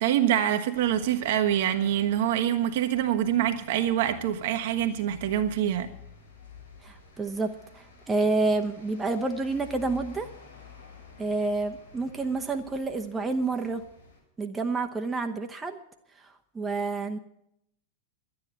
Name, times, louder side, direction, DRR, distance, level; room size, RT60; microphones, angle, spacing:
voice 1, 0.0-5.9, right 11 dB, 55° right, 1.1 m, -25 dB
sound 1, 0.7-14.2, left 4 dB, 85° left, 5.3 m, -51 dB
voice 2, 6.8-10.3 11.2-13.8 14.4-15.8 16.5-17.2, right 3 dB, 15° right, 0.9 m, -29 dB
12.0 x 9.8 x 8.9 m
figure-of-eight pair, 90°, 0 cm